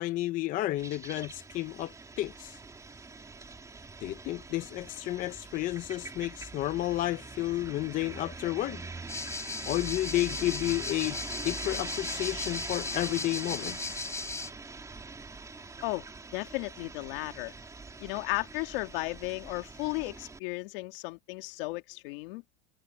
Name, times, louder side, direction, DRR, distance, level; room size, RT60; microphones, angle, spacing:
voice 1, 0.0-2.6 4.0-8.8 9.7-11.2 11.4-14.0, left 16 dB, 25° left, 0.5 m, -31 dB
sound 1, 0.8-20.4, right 3 dB, 10° right, 3.0 m, -44 dB
sound 2, 9.1-14.5, left 3 dB, 10° left, 4.3 m, -37 dB
voice 2, 16.3-17.5 18.0-22.4, left 24 dB, 55° left, 2.1 m, -35 dB
supercardioid pair, 150°, 32 cm